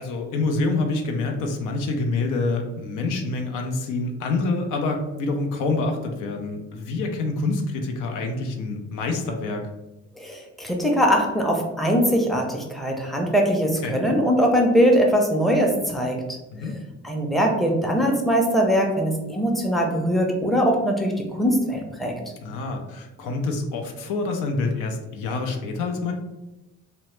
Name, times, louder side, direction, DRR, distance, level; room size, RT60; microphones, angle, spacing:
voice 1, 0.0-9.7 13.8-14.0 16.5-16.8 22.4-26.1, left 3 dB, 90° left, 4 dB, 0.5 m, -27 dB
voice 2, 10.2-16.2 17.0-22.1, equal, ahead, 0 dB, 0.5 m, -21 dB
2.8 x 2.1 x 3.1 m, 1.0 s
cardioid pair, 90°, 30 cm